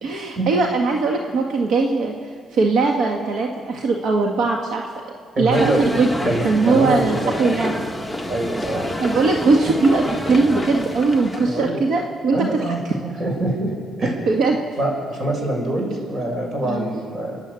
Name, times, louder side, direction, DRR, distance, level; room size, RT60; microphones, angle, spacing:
voice 1, 0.0-2.1 2.5-4.8 5.4-6.1 6.4-7.7 9.0-12.9 14.3-14.6 16.6-16.8, right 3 dB, 70° right, 1 dB, 1.7 m, -20 dB
voice 2, 5.3-5.9 6.2-7.3 8.3-8.9 11.4-11.8 12.3-12.8 13.2-13.7 14.0-14.1 14.8-17.4, right 1 dB, 40° right, 1 dB, 6.4 m, -24 dB
sound 1, 5.5-11.7, left 1 dB, ahead, 1.6 m, -28 dB
29.5 x 11.5 x 8.3 m, 2.1 s
cardioid pair, 90°, 0 cm